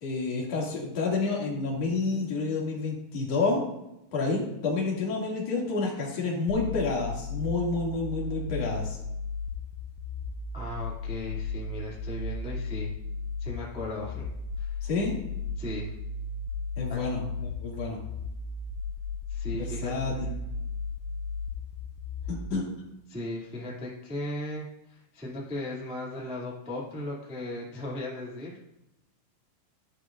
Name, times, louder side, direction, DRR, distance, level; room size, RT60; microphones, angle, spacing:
voice 1, 0.0-3.6 4.1-9.0 14.8-15.2 16.8-18.0 19.5-20.3 22.3-22.6, left 3 dB, 40° left, -4 dB, 2.9 m, -29 dB
sound 1, 6.5-22.5, left 3 dB, 80° left, 2.3 m, -35 dB
voice 2, 10.5-12.9 13.4-14.3 14.6-14.8 15.6-15.9 16.9-17.0 19.3-20.5 23.1-28.7, left 1 dB, 5° right, -6 dB, 0.4 m, -37 dB
11.0 x 11.0 x 2.5 m, 0.89 s
omnidirectional pair, 5.2 m